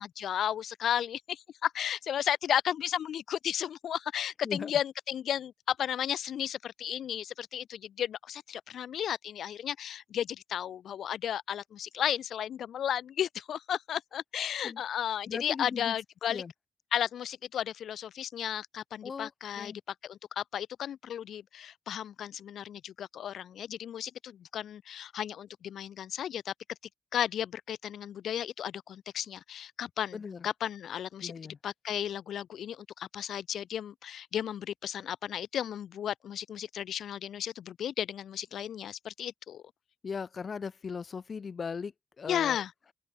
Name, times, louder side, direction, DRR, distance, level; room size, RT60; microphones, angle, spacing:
voice 1, 0.0-16.4 16.9-19.7 20.0-26.5 27.1-31.3 31.6-39.6 42.3-42.7, left 10 dB, 85° left, 1.0 m, -34 dB
voice 2, 15.2-16.0 16.3-16.5 19.0-19.3 19.6-19.8 30.1-30.5 31.2-31.6 40.0-42.6, left 5 dB, 45° left, 2.9 m, -38 dB
open air
wide cardioid pair, 130°, 0 cm